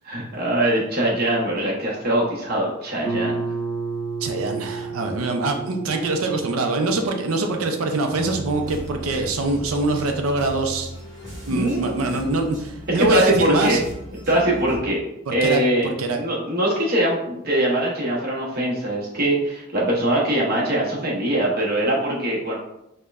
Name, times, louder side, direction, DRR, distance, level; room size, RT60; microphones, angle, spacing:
voice 1, 0.0-3.4 11.5-12.0 12.9-13.8 14.3-15.0 15.3-22.6, right 1 dB, 50° right, -4 dB, 0.9 m, -22 dB
Guitar, 3.0-8.5, right 3 dB, ahead, 0.8 m, -32 dB
voice 2, 4.2-10.9 11.5-13.8 15.3-16.2, right 2 dB, 85° right, 4 dB, 0.5 m, -24 dB
sound 1, 8.1-14.8, equal, 20° right, 1.4 m, -37 dB
4.4 x 2.2 x 2.4 m, 0.85 s
head